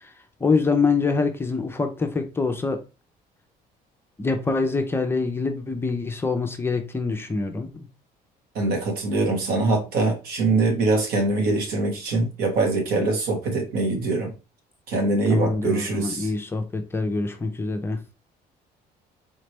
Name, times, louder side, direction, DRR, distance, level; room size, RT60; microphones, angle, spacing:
voice 1, 0.4-2.8 4.2-7.9 15.3-18.0, left 4 dB, 15° left, 0.5 m, -25 dB
voice 2, 8.5-14.3 14.9-16.3, right 3 dB, 75° right, 1.3 m, -23 dB
4.2 x 3.1 x 3.1 m
cardioid pair, 160°, 16 cm